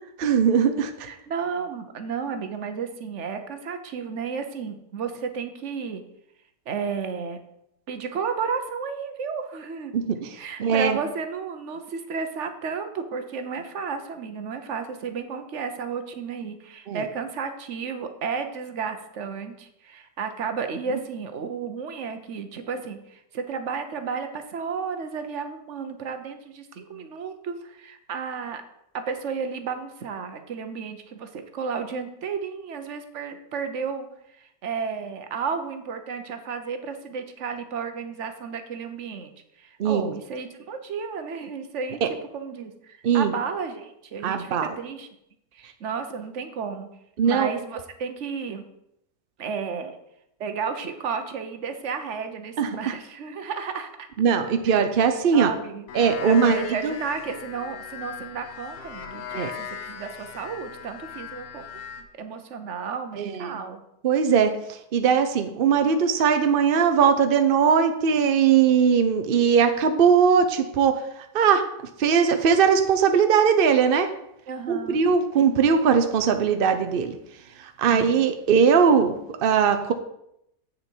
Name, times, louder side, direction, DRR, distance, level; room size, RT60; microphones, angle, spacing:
voice 1, 0.2-1.1 9.9-10.3 10.6-11.0 16.9-17.0 39.8-40.1 42.0-42.1 43.0-43.3 44.2-44.7 47.2-47.5 52.6-52.7 54.2-55.5 55.9-56.6 56.8-56.9 59.3-59.5 63.2-63.6 64.0-64.5 64.9-70.9 71.3-71.6 72.0-74.1 74.7-77.1 77.6-79.2 79.4-79.9, right 6 dB, 70° right, 7 dB, 0.5 m, -20 dB
voice 2, 1.0-6.0 6.7-7.4 7.9-9.9 10.4-28.6 28.9-39.3 39.6-42.0 42.3-45.1 45.5-46.9 47.2-48.7 49.4-50.0 50.4-54.1 54.7-54.8 55.3-55.9 56.2-63.8 69.3-69.5 74.5-75.0 77.9-78.2, right 6 dB, 55° right, 8 dB, 1.0 m, -33 dB
sound 1, 55.9-62.0, left 7 dB, 90° left, 1.5 m, -38 dB
8.1 x 6.6 x 4.5 m, 0.79 s
omnidirectional pair, 1.8 m